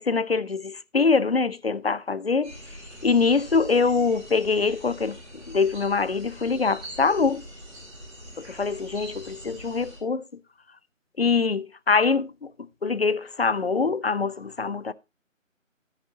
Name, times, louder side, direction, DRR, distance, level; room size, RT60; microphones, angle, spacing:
voice 1, 0.0-2.6 3.0-7.4 8.4-10.2 11.2-12.5 12.8-14.9, left 4 dB, 50° left, 0.4 m, -24 dB
sound 1, 2.4-10.0, equal, ahead, 1.5 m, -43 dB
11.5 x 9.5 x 2.8 m
figure-of-eight pair, 160°, 40 cm